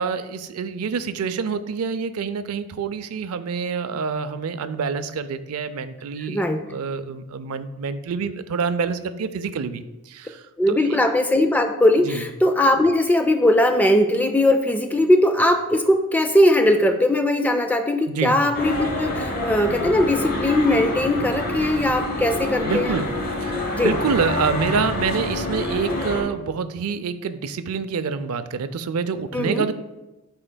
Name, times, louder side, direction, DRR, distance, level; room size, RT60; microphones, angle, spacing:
voice 1, 0.0-6.4 6.7-11.0 12.0-12.2 18.1-18.4 22.7-23.1 23.4-23.6 23.8-29.7, right 5 dB, 75° right, 11 dB, 0.4 m, -27 dB
voice 2, 6.3-6.6 10.6-23.0 23.7-23.9 29.3-29.7, left 1 dB, 5° left, 6 dB, 0.3 m, -19 dB
sound 1, 18.5-26.2, left 1 dB, 40° left, 1.0 m, -27 dB
11.0 x 4.4 x 2.2 m, 1.0 s
head